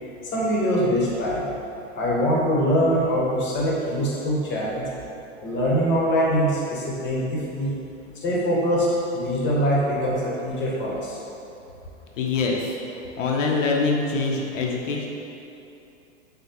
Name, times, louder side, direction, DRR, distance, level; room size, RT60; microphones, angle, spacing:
voice 1, 0.3-1.5 1.9-4.9 5.4-7.8 8.2-11.2, equal, 30° left, -5 dB, 1.2 m, -23 dB
voice 2, 12.2-12.7 13.2-15.1, left 4 dB, 75° left, -1 dB, 0.7 m, -24 dB
6.3 x 2.3 x 2.9 m, 2.8 s
hypercardioid pair, 105°, 38 cm